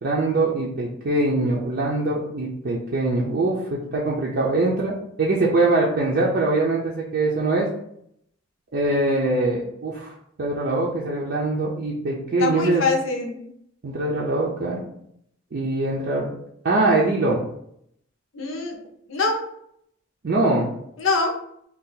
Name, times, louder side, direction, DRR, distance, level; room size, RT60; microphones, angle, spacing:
voice 1, 0.0-7.7 8.7-10.1 10.4-12.8 13.8-14.8 15.5-16.3 16.6-17.4 20.2-20.7, right 2 dB, 55° right, -4 dB, 0.5 m, -23 dB
voice 2, 12.4-13.4 18.3-18.8 19.1-19.5 21.0-21.4, left 3 dB, 85° left, 2 dB, 0.7 m, -24 dB
2.7 x 2.3 x 3.8 m, 0.72 s
head